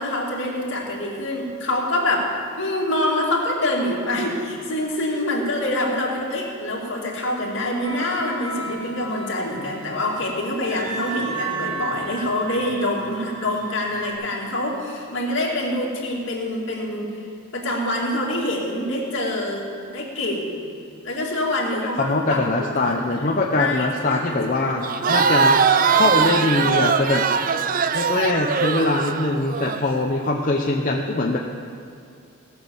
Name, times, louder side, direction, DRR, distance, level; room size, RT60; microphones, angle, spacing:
voice 1, 0.0-17.1 17.5-20.6 21.0-22.4 22.8-22.9 23.5-24.7, left 1 dB, 55° left, -2 dB, 2.4 m, -25 dB
sound 1, 7.8-14.1, right 3 dB, 75° right, 3.9 m, -34 dB
voice 2, 22.0-25.6 25.9-27.3 27.9-31.4, left 2 dB, 35° left, 0 dB, 0.7 m, -22 dB
Crowd, 24.8-29.8, right 6 dB, 40° right, 0.4 m, -20 dB
18.0 x 6.2 x 7.1 m, 2.5 s
head